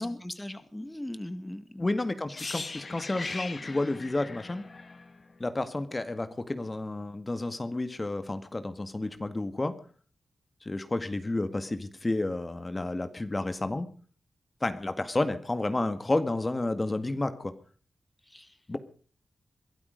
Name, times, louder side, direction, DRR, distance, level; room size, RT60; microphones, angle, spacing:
voice 1, 0.0-1.9 18.3-18.6, left 1 dB, 15° left, 10 dB, 1.8 m, -40 dB
voice 2, 1.8-4.7 5.4-9.7 10.6-13.9 14.6-17.5 18.7-18.8, left 2 dB, 30° left, 10 dB, 1.9 m, -31 dB
sound 1, 2.3-6.2 6.5-6.7, left 3 dB, 50° left, 2.4 m, -40 dB
22.5 x 12.5 x 5.2 m, 0.43 s
cardioid pair, 50°, 0 cm